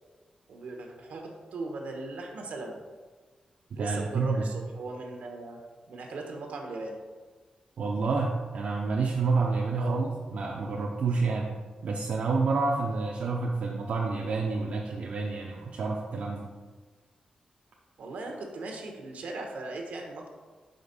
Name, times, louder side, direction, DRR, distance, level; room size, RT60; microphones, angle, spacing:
voice 1, 0.5-2.8 3.7-5.6 5.9-7.0 9.8-10.1 18.0-20.3, right 2 dB, 85° right, 2 dB, 1.0 m, -38 dB
voice 2, 3.7-4.5 7.8-11.5 11.8-16.5, right 4 dB, 70° right, -2 dB, 0.6 m, -29 dB
5.3 x 5.1 x 4.0 m, 1.4 s
wide cardioid pair, 160°, 2 cm